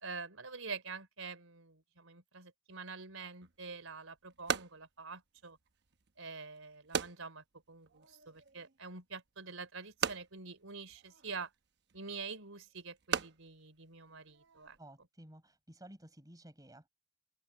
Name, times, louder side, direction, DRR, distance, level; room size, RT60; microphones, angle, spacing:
voice 1, 0.0-5.6 6.2-11.5 11.9-14.8, right 4 dB, 80° right, 3.8 m, -46 dB
sound 1, 3.4-14.8, right 6 dB, 55° right, 1.0 m, -42 dB
voice 2, 14.8-16.9, right 1 dB, 20° right, 5.1 m, -54 dB
open air
head